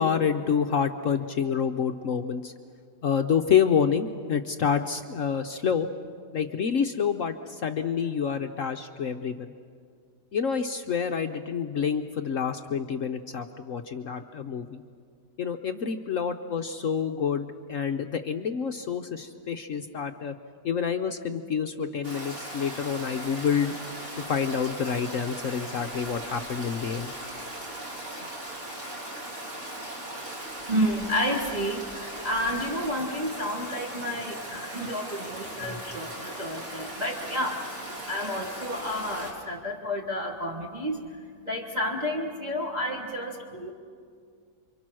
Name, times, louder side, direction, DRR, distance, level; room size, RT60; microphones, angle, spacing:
voice 1, 0.0-2.5 3.0-5.9 6.3-9.5 10.3-14.8 15.4-20.4 20.6-23.7 24.1-27.1, left 7 dB, 60° left, 6 dB, 1.0 m, -28 dB
Stream, 22.0-39.3, right 1 dB, 40° right, 4.1 m, -38 dB
voice 2, 30.7-43.7, equal, 25° right, -2 dB, 1.5 m, -31 dB
28.5 x 24.5 x 6.2 m, 2.2 s
omnidirectional pair, 1.8 m